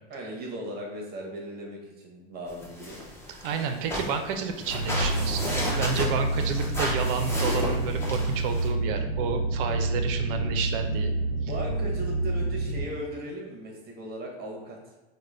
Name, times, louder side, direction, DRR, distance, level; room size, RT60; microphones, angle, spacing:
voice 1, 0.1-3.0 11.5-14.8, equal, 30° right, -1 dB, 0.8 m, -37 dB
sound 1, 2.5-8.7, left 1 dB, 10° left, 0.6 m, -33 dB
voice 2, 3.3-11.2, right 6 dB, 55° right, 6 dB, 0.5 m, -30 dB
sound 2, 4.7-12.9, right 2 dB, 90° left, 0.8 m, -28 dB
3.7 x 2.1 x 3.2 m, 1.1 s
hypercardioid pair, 115°, 32 cm